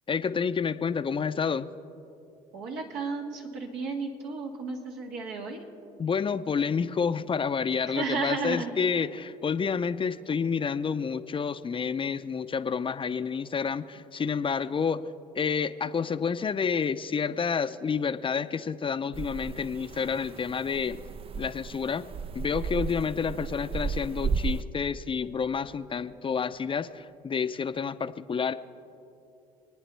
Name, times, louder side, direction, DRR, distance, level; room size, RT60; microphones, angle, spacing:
voice 1, 0.1-1.7 6.0-15.0 15.3-21.0 21.4-22.1 22.3-28.5, left 6 dB, 30° left, 11 dB, 0.6 m, -29 dB
voice 2, 2.5-5.6 7.9-8.7, right 4 dB, 75° right, 0 dB, 1.9 m, -33 dB
sound 1, 19.1-24.6, right 5 dB, 35° right, 0.5 m, -34 dB
28.5 x 9.7 x 3.4 m, 2.8 s
hypercardioid pair, 60°, 17 cm